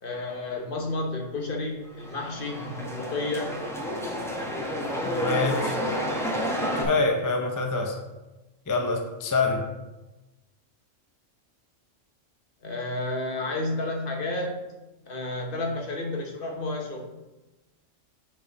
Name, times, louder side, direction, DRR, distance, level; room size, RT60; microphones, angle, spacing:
voice 1, 0.0-3.5 5.3-5.7 12.6-14.6 15.1-17.1, left 2 dB, 45° left, 2 dB, 1.1 m, -31 dB
sound 1, 1.9-6.8, equal, ahead, 1.0 m, -30 dB
voice 2, 5.0-5.7 6.8-8.0 8.7-9.6, left 3 dB, 25° left, 3 dB, 0.4 m, -26 dB
5.9 x 5.0 x 4.5 m, 1.1 s
omnidirectional pair, 1.3 m